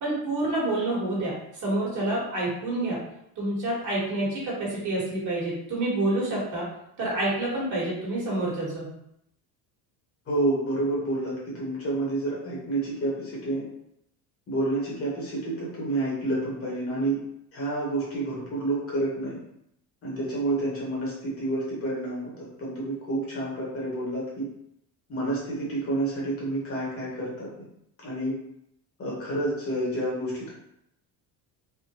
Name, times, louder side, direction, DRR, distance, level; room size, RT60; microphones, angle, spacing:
voice 1, 0.0-3.0 3.4-6.6 7.0-8.9, right 2 dB, 45° right, -5 dB, 1.4 m, -28 dB
voice 2, 10.3-13.6 14.5-17.2 17.5-19.4 20.0-24.5 25.1-27.5 28.0-28.3 29.0-30.5, right 2 dB, 35° left, -6 dB, 1.2 m, -29 dB
3.5 x 2.2 x 2.9 m, 0.77 s
cardioid pair, 150°, 40 cm